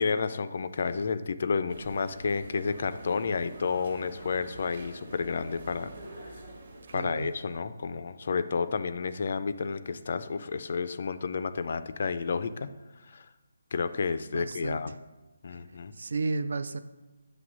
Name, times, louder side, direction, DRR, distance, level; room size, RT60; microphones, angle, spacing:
voice 1, 0.0-5.9 6.2-6.4 6.9-12.7 13.1-13.3 13.7-14.9 15.4-15.9, left 5 dB, 40° left, 12 dB, 0.3 m, -31 dB
sound 1, 1.7-7.6, right 1 dB, 45° right, 1.0 m, -46 dB
voice 2, 6.9-7.3 14.3-14.8 15.5-15.6 16.0-16.8, right 3 dB, 60° right, 12 dB, 0.4 m, -32 dB
7.7 x 3.2 x 6.0 m, 1.1 s
hypercardioid pair, 175°, 0 cm